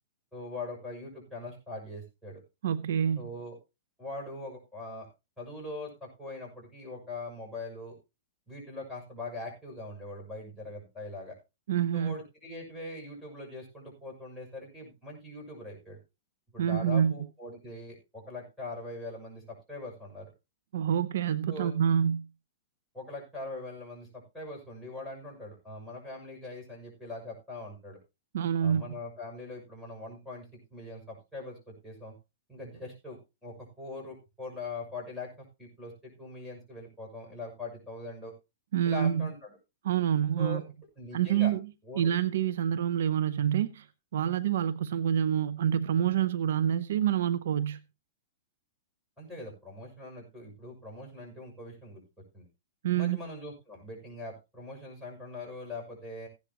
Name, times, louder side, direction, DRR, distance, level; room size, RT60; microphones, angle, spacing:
voice 1, 0.3-2.4 3.2-3.6 4.0-5.1 5.4-7.9 8.5-11.4 11.9-16.0 16.5-20.3 21.5-21.7 22.9-28.0 28.6-32.1 32.5-38.3 38.8-39.6 40.4-40.6 40.9-41.5 41.8-42.1 49.2-52.0 52.3-52.4 52.9-56.3, left 2 dB, ahead, 6.5 m, -42 dB
voice 2, 2.6-3.2 11.7-12.2 16.6-17.1 20.7-22.3 28.3-28.8 38.7-39.3 39.8-40.6 41.1-41.7 42.0-43.9 44.1-47.8 52.8-53.2, right 9 dB, 70° right, 0.7 m, -27 dB
15.5 x 10.5 x 2.9 m
hypercardioid pair, 135°, 0 cm